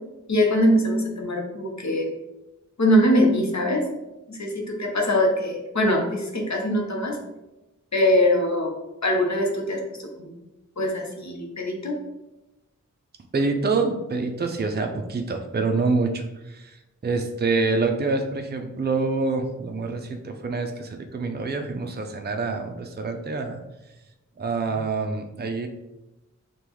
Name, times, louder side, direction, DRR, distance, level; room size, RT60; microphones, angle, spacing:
voice 1, 0.3-2.1 2.8-3.8 4.3-7.2 7.9-8.7 9.0-10.3 10.8-12.0, left 1 dB, 60° left, 1 dB, 0.8 m, -22 dB
voice 2, 13.3-16.8 17.0-23.6 24.4-25.7, right 3 dB, 35° right, 5 dB, 0.4 m, -26 dB
5.1 x 2.3 x 3.0 m, 0.99 s
wide cardioid pair, 45°, 31 cm